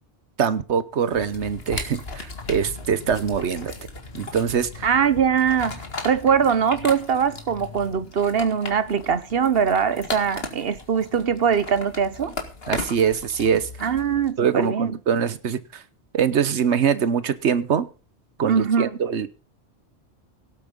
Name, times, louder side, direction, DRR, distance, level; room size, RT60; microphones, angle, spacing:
voice 1, 0.4-3.7 4.1-4.9 12.7-13.7 14.4-15.8 16.1-17.9 18.4-19.4, right 7 dB, 85° right, 1.3 m, -23 dB
sound 1, 1.1-14.3, left 3 dB, 60° left, 2.3 m, -37 dB
voice 2, 4.8-5.8 6.0-12.3 13.8-15.0 18.4-19.0, right 7 dB, 60° right, 1.2 m, -22 dB
17.5 x 8.5 x 5.3 m
omnidirectional pair, 1.1 m